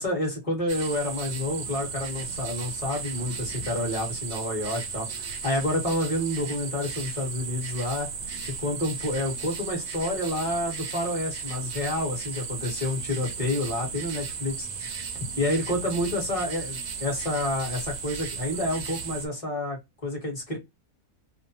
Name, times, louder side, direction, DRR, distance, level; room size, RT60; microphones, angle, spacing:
voice 1, 0.0-8.1 8.6-14.7 15.4-20.6, left 1 dB, 25° left, 1.1 m, -29 dB
sound 1, 0.7-19.3, right 5 dB, 60° right, 0.6 m, -35 dB
2.7 x 2.1 x 2.7 m
omnidirectional pair, 1.5 m